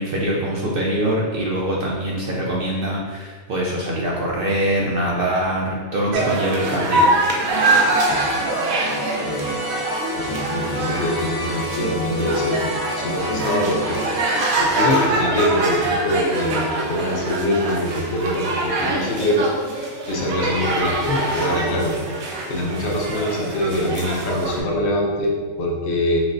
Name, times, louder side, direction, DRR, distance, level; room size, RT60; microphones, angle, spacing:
voice 1, 0.0-7.0, right 1 dB, 60° right, -3 dB, 0.6 m, -23 dB
sound 1, 6.1-24.6, right 2 dB, 80° right, 1.1 m, -24 dB
sound 2, 7.5-14.6, equal, 80° left, 1.8 m, -29 dB
voice 2, 10.2-14.0 14.6-19.5 20.1-22.0 22.5-26.2, left 1 dB, 60° left, -1 dB, 0.8 m, -23 dB
5.9 x 2.1 x 2.5 m, 1.5 s
omnidirectional pair, 1.4 m